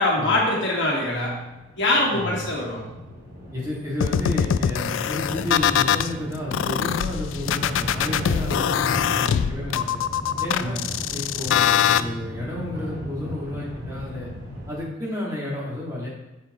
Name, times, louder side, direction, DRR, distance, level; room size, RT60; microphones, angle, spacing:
voice 1, 0.0-1.4 1.8-2.8 10.6-10.8, left 2 dB, 65° left, -3 dB, 1.7 m, -23 dB
sound 1, 1.4-14.8, equal, 65° right, 2.5 m, -36 dB
voice 2, 3.5-10.0 10.4-10.8 11.1-14.3 14.7-16.1, left 1 dB, 15° right, -6 dB, 2.0 m, -31 dB
sound 2, 4.0-6.1 6.5-12.0, left 9 dB, 80° left, 0.3 m, -22 dB
7.0 x 6.9 x 3.0 m, 0.98 s
head